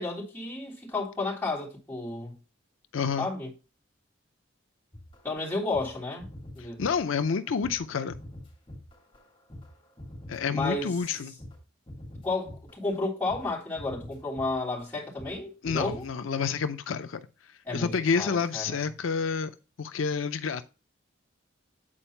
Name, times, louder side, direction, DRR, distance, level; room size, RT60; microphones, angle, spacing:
voice 1, 0.0-2.4 3.2-3.5 5.2-6.3 6.5-6.8 10.5-10.9 12.2-16.0 17.6-18.8, left 3 dB, 10° left, 3.3 m, -32 dB
voice 2, 2.9-3.3 6.6-8.2 10.3-11.4 15.6-17.2 17.7-19.5 19.8-20.6, left 5 dB, 85° left, 0.5 m, -29 dB
sound 1, 4.9-11.6 11.9-13.0 13.3-13.5 13.7-14.9 15.2-15.4 15.6-16.1, left 1 dB, 25° left, 2.8 m, -45 dB
8.8 x 4.5 x 4.3 m
head